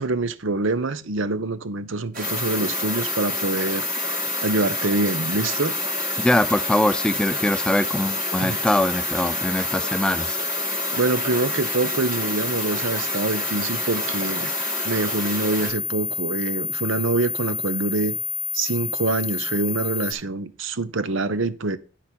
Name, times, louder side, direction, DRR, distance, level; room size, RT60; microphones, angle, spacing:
voice 1, 0.0-3.9 4.4-5.7 8.4-8.6 10.9-14.5 14.8-18.2 18.5-21.8, right 3 dB, 65° right, 0.8 m, -25 dB
sound 1, 2.1-15.7, right 1 dB, 40° right, 2.3 m, -32 dB
sound 2, 2.2-20.1, left 8 dB, 65° left, 1.1 m, -28 dB
voice 2, 6.2-10.4, left 1 dB, 5° left, 0.3 m, -23 dB
10.0 x 4.2 x 6.1 m
head